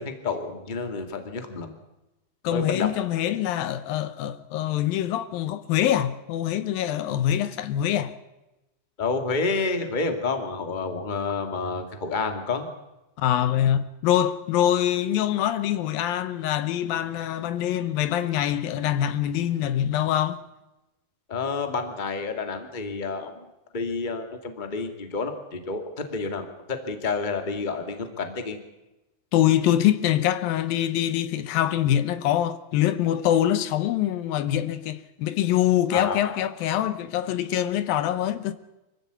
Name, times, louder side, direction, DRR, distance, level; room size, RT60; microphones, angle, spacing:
voice 1, 0.0-1.7 2.5-2.9 9.0-12.7 21.3-23.3 23.7-25.8 26.1-28.6 35.9-36.3, left 4 dB, 15° left, 1.7 m, -29 dB
voice 2, 2.4-8.1 13.2-20.4 29.3-38.5, left 11 dB, 80° left, 2.7 m, -24 dB
25.0 x 15.5 x 8.2 m
omnidirectional pair, 4.2 m